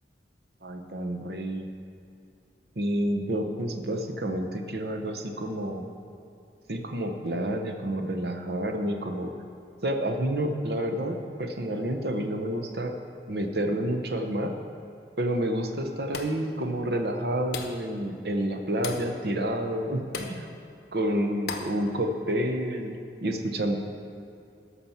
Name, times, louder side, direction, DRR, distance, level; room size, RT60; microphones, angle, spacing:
voice 1, 0.6-1.7 2.8-5.9 6.7-9.3 9.8-13.0 13.3-14.5 15.2-20.5 20.9-23.8, right 1 dB, 65° right, 4 dB, 0.8 m, -29 dB
sound 1, 16.1-16.5 17.5-17.9 18.8-19.1 20.1-20.4 21.5-21.8, left 4 dB, 60° left, 0.9 m, -35 dB
13.5 x 5.9 x 5.7 m, 2.6 s
head